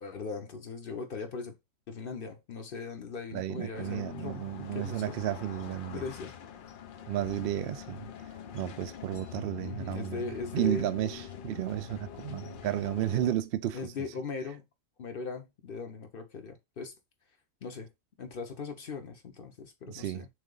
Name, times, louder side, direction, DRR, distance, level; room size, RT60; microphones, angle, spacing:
voice 1, 0.0-1.5 1.9-5.0 5.9-6.4 9.6-10.9 13.7-14.6 15.0-16.9 17.6-17.9 18.2-20.3, left 4 dB, 50° left, 0.9 m, -39 dB
voice 2, 3.3-6.0 7.1-8.1 8.5-13.9 19.9-20.2, right 12 dB, 65° right, 0.6 m, -33 dB
sound 1, 3.7-13.3, left 9 dB, 65° left, 0.5 m, -44 dB
3.7 x 3.2 x 3.7 m
omnidirectional pair, 1.4 m